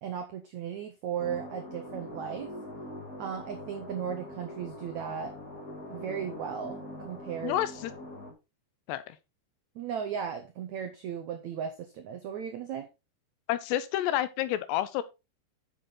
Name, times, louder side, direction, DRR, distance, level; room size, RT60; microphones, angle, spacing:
voice 1, 0.0-2.5 3.2-5.3 5.9-7.6 9.7-12.9, right 8 dB, 85° right, 1.6 m, -36 dB
sound 1, 1.2-8.3, left 1 dB, 30° left, 1.8 m, -43 dB
voice 2, 7.4-7.9 8.9-9.2 13.5-15.0, left 13 dB, 90° left, 3.0 m, -29 dB
7.8 x 6.8 x 4.0 m
omnidirectional pair, 4.7 m